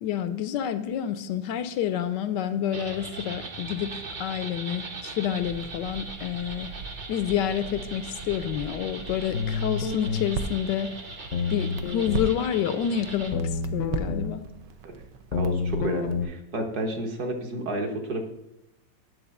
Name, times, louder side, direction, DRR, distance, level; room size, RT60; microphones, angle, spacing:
voice 1, 0.0-6.7 7.1-10.9 11.5-14.4, left 10 dB, 75° left, 11 dB, 1.2 m, -29 dB
sound 1, 2.7-13.3, right 3 dB, 35° right, 0.8 m, -40 dB
Crackle, 5.4-16.2, right 5 dB, 75° right, 1.3 m, -39 dB
sound 2, 9.3-10.3 11.3-12.3 13.3-14.3 15.3-16.3, left 5 dB, 60° left, 0.8 m, -28 dB
voice 2, 15.3-18.2, right 2 dB, 60° right, 3 dB, 1.6 m, -31 dB
10.0 x 3.9 x 7.0 m, 0.89 s
omnidirectional pair, 2.0 m